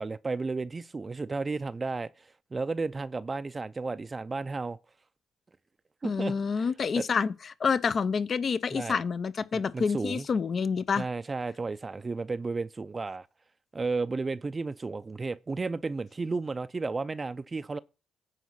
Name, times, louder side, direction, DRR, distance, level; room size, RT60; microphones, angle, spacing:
voice 1, 0.0-4.8 6.0-6.7 6.9-7.0 8.7-9.0 9.5-10.3 11.0-13.3 13.7-17.8, right 3 dB, 35° right, 0.4 m, -33 dB
voice 2, 6.0-7.3 7.6-11.0, left 5 dB, 55° left, 0.6 m, -28 dB
9.3 x 4.7 x 5.6 m
hypercardioid pair, 50°, 0 cm